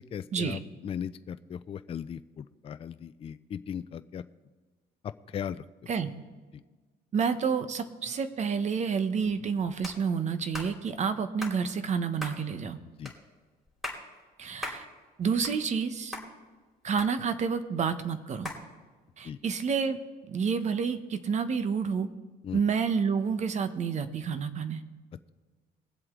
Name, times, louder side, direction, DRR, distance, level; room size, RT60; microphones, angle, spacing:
voice 1, 0.0-4.2 5.0-5.6 12.8-13.1 19.2-19.4 22.4-22.6, left 8 dB, 35° left, 12 dB, 0.4 m, -38 dB
voice 2, 7.1-12.8 14.4-14.9 15.2-16.2 16.8-18.5 19.2-20.0 20.3-22.1 22.5-24.8, right 6 dB, 45° right, 11 dB, 1.0 m, -29 dB
sound 1, 9.8-10.0 10.5-10.7 11.4-11.6 12.2-12.4 13.1-13.2 13.7-14.0 14.6-14.8 15.2-15.9 16.1-16.3 17.0-17.5 18.4-18.6, left 1 dB, ahead, 3.1 m, -38 dB
21.0 x 7.8 x 3.7 m, 1.3 s
cardioid pair, 110°, 17 cm